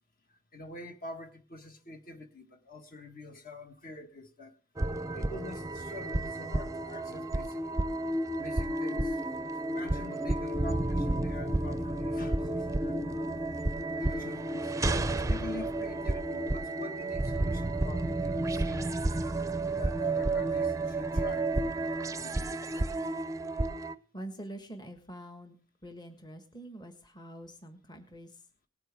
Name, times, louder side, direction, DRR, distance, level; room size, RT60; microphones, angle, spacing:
voice 1, 0.3-4.5 5.1-7.6 8.4-9.2 9.7-13.6 13.9-14.7 15.3-18.9 19.7-21.5 22.2-22.4 22.9-23.1, left 2 dB, 45° left, 1.6 m, -46 dB
sound 1, 4.8-23.9, right 2 dB, 15° right, 0.6 m, -31 dB
voice 2, 24.1-25.6 25.8-28.4, right 1 dB, 20° left, 1.4 m, -45 dB
19.0 x 9.0 x 3.4 m
head